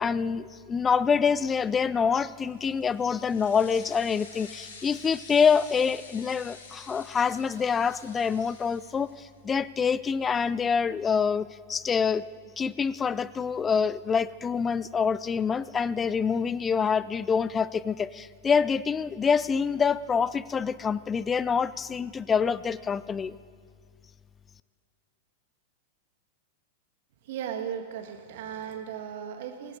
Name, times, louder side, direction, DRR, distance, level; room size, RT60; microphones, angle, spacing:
voice 1, 0.0-12.2 12.6-23.4, left 6 dB, 20° left, 18 dB, 0.5 m, -26 dB
sound 1, 2.5-9.4, left 4 dB, 75° left, 2.7 m, -49 dB
voice 2, 27.2-29.8, right 8 dB, 65° right, 4 dB, 2.0 m, -36 dB
19.0 x 16.5 x 4.0 m, 2.1 s
hypercardioid pair, 100°, 0 cm